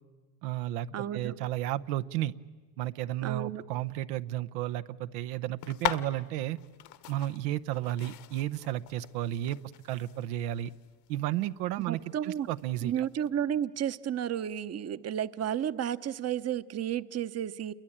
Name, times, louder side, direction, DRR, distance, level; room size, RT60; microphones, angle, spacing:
voice 1, 0.4-2.3 2.8-6.6 7.1-9.6 9.8-10.7 11.1-13.0, right 13 dB, 80° right, 11 dB, 0.9 m, -33 dB
voice 2, 0.9-1.3 3.2-3.6 11.9-12.5 12.8-17.7, right 10 dB, 35° right, 14 dB, 0.9 m, -32 dB
sound 1, 5.6-13.3, left 12 dB, 60° left, 1.5 m, -41 dB
28.0 x 22.5 x 8.7 m, 1.4 s
supercardioid pair, 85°, 46 cm